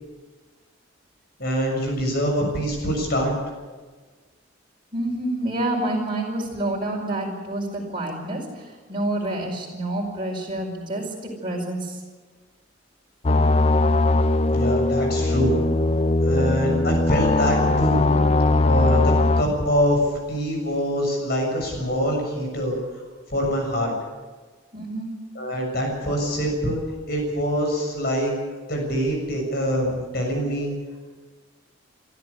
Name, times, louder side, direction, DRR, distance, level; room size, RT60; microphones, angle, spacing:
voice 1, 1.4-3.3 14.5-15.6 16.2-18.1 18.6-20.0 20.3-22.8 23.3-23.9 25.4-26.8 27.1-28.3 28.7-30.7, equal, 50° left, 1 dB, 6.9 m, -24 dB
voice 2, 4.9-12.0 24.7-25.1, right 1 dB, 25° right, -2 dB, 5.0 m, -28 dB
sound 1, 13.2-19.4, left 2 dB, 30° left, 0.5 m, -20 dB
24.0 x 13.5 x 8.5 m, 1.3 s
head